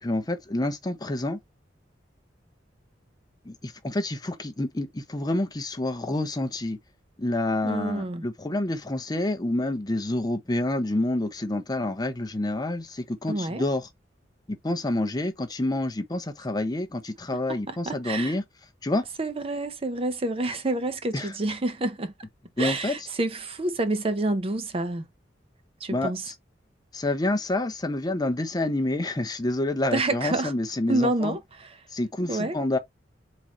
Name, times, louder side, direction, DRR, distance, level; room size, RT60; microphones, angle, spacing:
voice 1, 0.0-1.4 3.4-6.8 7.2-13.8 14.5-18.4 18.8-19.0 21.1-21.3 22.6-22.9 25.9-26.3 26.9-31.4 31.9-32.8, left 1 dB, 20° left, 0.6 m, -28 dB
voice 2, 7.6-8.2 13.3-13.7 17.5-18.3 19.2-22.1 22.6-25.1 25.8-26.3 29.9-30.5 30.9-31.8 32.3-32.6, right 2 dB, 30° right, 0.6 m, -28 dB
3.8 x 2.9 x 4.1 m
head